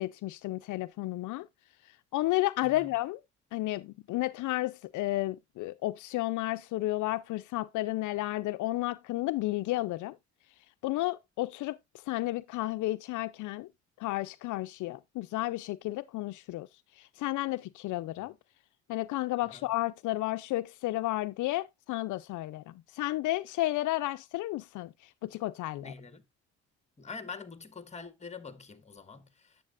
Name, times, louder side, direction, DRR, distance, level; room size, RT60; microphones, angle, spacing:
voice 1, 0.0-1.5 2.1-3.2 3.5-10.2 10.8-11.8 12.1-13.7 14.0-16.7 17.2-18.3 18.9-24.9 25.2-25.9, left 17 dB, 80° left, 0.4 m, -32 dB
voice 2, 2.6-2.9 19.4-19.7 25.8-26.2 27.0-29.6, left 5 dB, 20° left, 1.3 m, -45 dB
9.6 x 7.4 x 2.4 m
cardioid pair, 90°, 30 cm